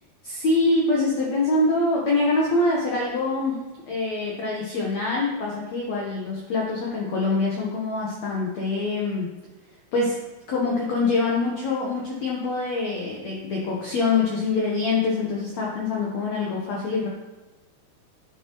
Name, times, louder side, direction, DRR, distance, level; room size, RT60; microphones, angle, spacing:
voice 1, 0.2-3.6 3.9-9.3 9.9-10.2 10.5-17.1, left 3 dB, 90° left, -3 dB, 1.5 m, -24 dB
9.2 x 6.9 x 3.0 m, 1.2 s
omnidirectional pair, 4.8 m